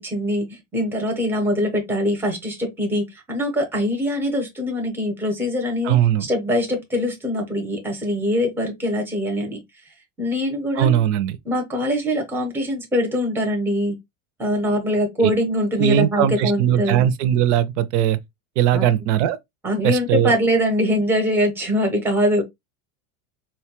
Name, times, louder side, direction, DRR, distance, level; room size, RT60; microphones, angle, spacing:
voice 1, 0.0-9.6 10.2-11.0 11.4-14.0 14.4-17.1 18.7-18.9 19.6-22.4, equal, 5° right, 0.7 m, -23 dB
voice 2, 5.8-6.3 10.8-11.4 15.2-15.3 15.8-18.2 18.6-19.4 19.8-20.3, right 10 dB, 55° right, 0.5 m, -19 dB
4.3 x 2.2 x 2.8 m
supercardioid pair, 160°, 43 cm